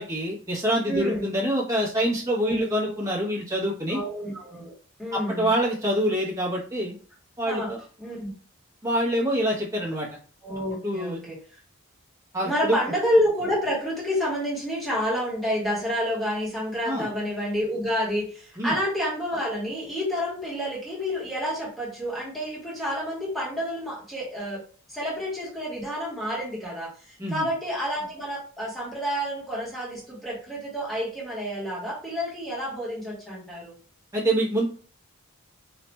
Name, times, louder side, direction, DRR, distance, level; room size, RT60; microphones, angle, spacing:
voice 1, 0.0-4.0 5.1-6.9 7.4-7.8 8.8-10.1 10.7-11.2 12.3-12.8 16.8-17.1 18.6-18.7 27.2-27.5 34.1-34.7, right 1 dB, 15° right, -4 dB, 0.8 m, -26 dB
voice 2, 0.9-1.3 2.4-3.0 3.9-4.7 5.0-5.5 7.4-7.7 8.0-8.3 9.4-9.5 10.4-11.4 12.4-24.6 24.9-33.7, equal, ahead, -6 dB, 1.2 m, -29 dB
4.0 x 2.4 x 2.2 m, 0.41 s
head